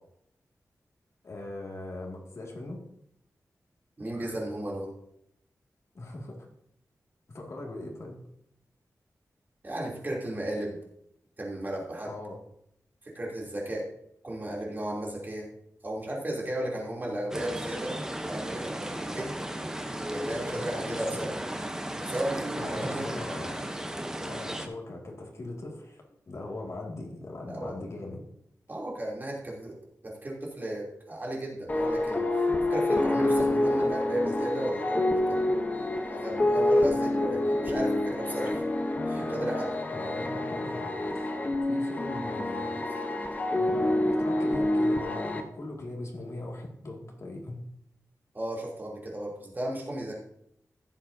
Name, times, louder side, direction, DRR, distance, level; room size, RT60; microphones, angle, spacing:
voice 1, 1.2-2.8 5.9-6.5 7.3-8.2 12.1-12.4 20.5-21.3 22.6-23.6 24.2-28.2 39.9-41.3 41.7-42.7 43.6-47.6, left 2 dB, 55° left, -1 dB, 2.1 m, -40 dB
voice 2, 4.0-4.9 9.6-10.7 11.4-12.1 13.1-13.8 14.2-15.5 15.8-17.9 18.2-19.3 20.1-21.3 22.0-23.1 27.5-27.8 28.7-29.8 30.0-32.3 32.7-35.5 36.1-38.6 39.1-39.7 48.3-50.2, right 1 dB, 30° right, -3 dB, 3.0 m, -34 dB
sound 1, 17.3-24.7, right 1 dB, 10° right, 0.8 m, -35 dB
sound 2, 31.7-45.4, left 1 dB, 25° left, 0.9 m, -27 dB
15.5 x 7.3 x 2.7 m, 0.74 s
wide cardioid pair, 125°, 6 cm